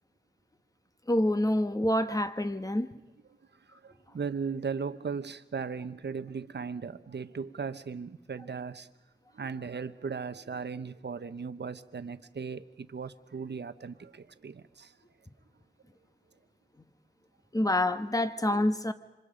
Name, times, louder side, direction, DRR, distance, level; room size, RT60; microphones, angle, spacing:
voice 1, 1.1-2.9 17.5-18.9, left 1 dB, 20° left, 1.3 m, -27 dB
voice 2, 3.7-8.9 9.3-14.9, right 5 dB, 70° right, 1.0 m, -37 dB
27.0 x 26.0 x 5.1 m
wide cardioid pair, 70°, 19 cm